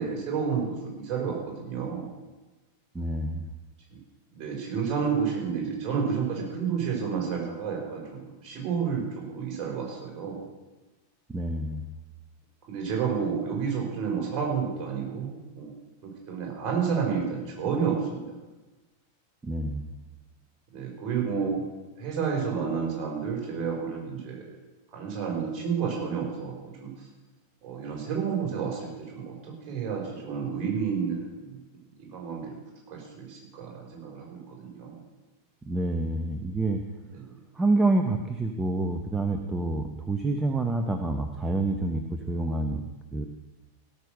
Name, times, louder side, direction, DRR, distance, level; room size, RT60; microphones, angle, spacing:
voice 1, 0.0-2.1 3.9-4.0 4.3-10.4 12.7-15.7 16.0-18.2 20.7-21.6 22.0-24.5 24.9-26.5 26.8-26.9 27.6-31.6 32.0-32.5 32.9-35.0 37.1-37.3, right 6 dB, 35° right, -1 dB, 5.0 m, -30 dB
voice 2, 2.9-3.5 11.3-11.8 19.4-19.9 35.7-36.8 37.6-42.0 42.3-42.8 43.1-43.2, right 2 dB, 10° right, 6 dB, 0.8 m, -27 dB
17.0 x 6.5 x 6.5 m, 1.2 s
figure-of-eight pair, 90°, 0 cm